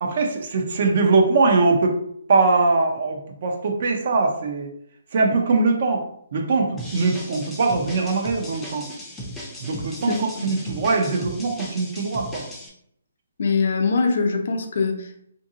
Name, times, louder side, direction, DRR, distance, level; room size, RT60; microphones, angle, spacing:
voice 1, 0.0-1.9 2.3-4.7 5.1-6.0 6.3-8.9 9.6-12.4, right 3 dB, 55° right, 3 dB, 0.5 m, -21 dB
sound 1, 6.8-12.7, equal, 5° left, 0.5 m, -37 dB
voice 2, 13.4-15.3, left 4 dB, 60° left, 4 dB, 0.5 m, -22 dB
2.7 x 2.6 x 2.6 m, 0.70 s
hypercardioid pair, 150°, 0 cm